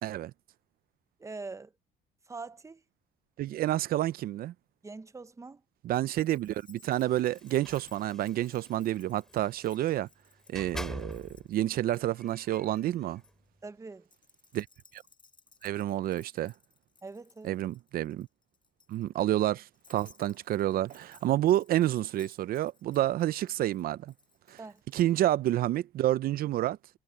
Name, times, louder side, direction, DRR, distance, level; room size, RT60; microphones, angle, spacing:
voice 1, 1.2-1.7 2.3-2.8 4.8-5.6 13.6-14.1 17.0-17.6 24.6-24.8, right 3 dB, 15° right, 0.9 m, -43 dB
voice 2, 3.4-4.5 5.8-10.1 10.5-13.2 14.5-14.7 14.9-15.0 15.6-16.5 17.4-18.3 18.9-19.6 19.9-24.1 24.5-24.6 24.9-26.8, right 13 dB, 60° right, 0.5 m, -29 dB
Keys jangling, 5.9-13.3 14.0-25.0, left 4 dB, 30° left, 5.4 m, -62 dB
sound 1, 6.9-10.0 10.5-11.5 11.9-13.3, equal, 5° left, 4.8 m, -46 dB
cardioid pair, 110°, 17 cm